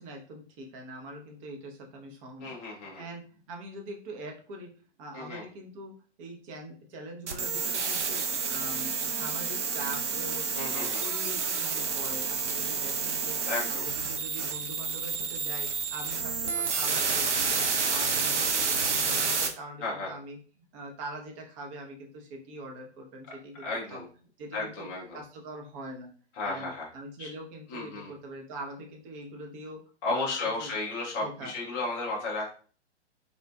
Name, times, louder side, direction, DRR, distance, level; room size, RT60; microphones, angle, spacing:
voice 1, 0.0-2.5 2.8-4.7 5.0-13.4 13.7-20.4 20.7-24.0 24.4-26.1 26.4-29.8 30.1-30.7 31.2-31.5, right 1 dB, 30° right, 2 dB, 0.7 m, -43 dB
voice 2, 2.4-3.0 5.1-5.4 10.5-11.0 13.4-13.9 19.8-20.1 23.6-24.1 24.5-25.2 26.4-26.9 27.2-27.3 27.7-28.1 30.0-32.5, left 3 dB, 10° left, -3 dB, 0.3 m, -33 dB
sound 1, 7.3-19.5, right 5 dB, 80° right, 0.6 m, -29 dB
3.7 x 2.4 x 2.2 m, 0.40 s
figure-of-eight pair, 115°, 35 cm